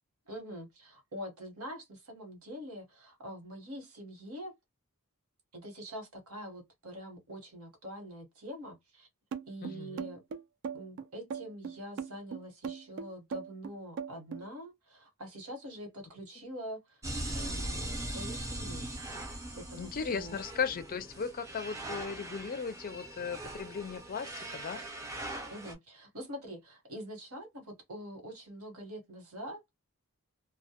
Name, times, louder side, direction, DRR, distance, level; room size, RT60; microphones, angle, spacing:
voice 1, 0.3-4.5 5.5-9.1 9.5-10.2 10.7-17.0 17.3-18.9 19.6-20.4 25.5-29.6, equal, 80° right, 1.1 m, -45 dB
sound 1, 9.3-14.5, right 6 dB, 55° right, 0.3 m, -39 dB
voice 2, 9.6-10.1 19.8-24.8, left 6 dB, 40° left, 0.4 m, -37 dB
sound 2, 17.0-25.7, right 1 dB, 15° right, 0.6 m, -40 dB
2.1 x 2.1 x 2.8 m
head